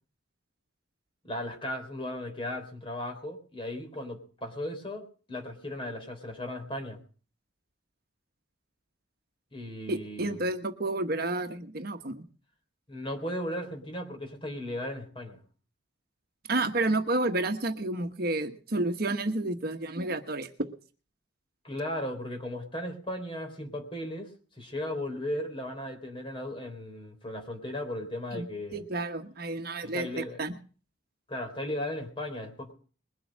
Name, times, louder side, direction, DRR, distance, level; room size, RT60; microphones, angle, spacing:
voice 1, 1.2-7.0 9.5-10.4 12.9-15.4 21.6-24.3 24.6-28.8 29.8-30.4 31.3-32.7, left 1 dB, 25° left, 5 dB, 3.8 m, -36 dB
voice 2, 9.9-12.2 16.5-20.5 28.3-30.5, right 2 dB, 50° right, 7 dB, 1.2 m, -30 dB
21.5 x 7.9 x 6.3 m, 0.40 s
head